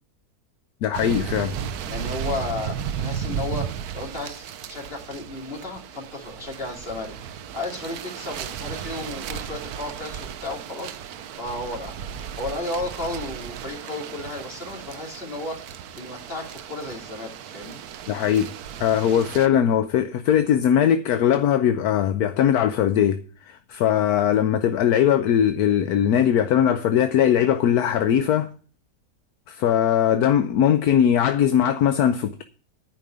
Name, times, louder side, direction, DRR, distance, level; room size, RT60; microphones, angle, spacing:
voice 1, 0.8-1.6 18.1-18.5 18.8-23.2 23.5-28.5 29.5-32.4, left 9 dB, 75° left, 1.2 m, -20 dB
sound 1, 0.9-19.5, right 8 dB, 75° right, 1.2 m, -35 dB
voice 2, 1.9-12.0 12.4-15.6 16.0-17.8, left 2 dB, 35° left, 2.9 m, -34 dB
10.5 x 5.3 x 8.4 m
omnidirectional pair, 1.7 m